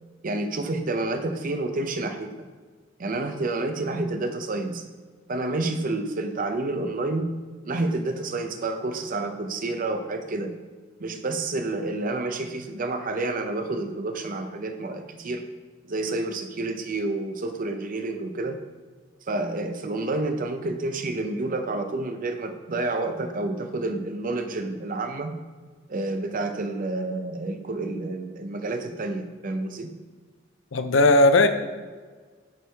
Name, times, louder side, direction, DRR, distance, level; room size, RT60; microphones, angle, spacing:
voice 1, 0.2-2.3 3.0-4.8 5.3-7.3 7.6-10.5 11.0-15.4 15.9-18.6 19.3-25.4 25.9-29.9, right 2 dB, 45° right, 7 dB, 0.6 m, -29 dB
voice 2, 30.7-31.5, left 2 dB, 85° left, 9 dB, 0.6 m, -17 dB
9.0 x 4.6 x 3.4 m, 1.5 s
head